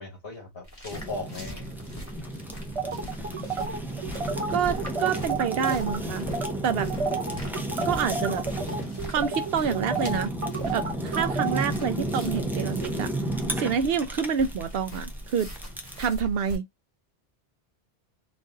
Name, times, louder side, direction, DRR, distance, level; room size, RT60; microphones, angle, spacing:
voice 1, 0.0-1.7 13.7-13.8, left 3 dB, 65° left, 1.9 m, -38 dB
sound 1, 0.6-16.6, equal, 15° left, 1.6 m, -42 dB
Fire, 0.9-16.0, right 1 dB, ahead, 0.5 m, -33 dB
sound 2, 2.7-6.0 6.3-6.5 6.8-11.6, right 5 dB, 35° right, 0.8 m, -31 dB
voice 2, 4.5-6.3 6.6-6.9 7.8-8.4 9.1-10.3 10.7-13.1 13.6-15.5 16.0-16.7, right 6 dB, 70° right, 0.8 m, -27 dB
4.0 x 2.6 x 3.7 m
omnidirectional pair, 1.1 m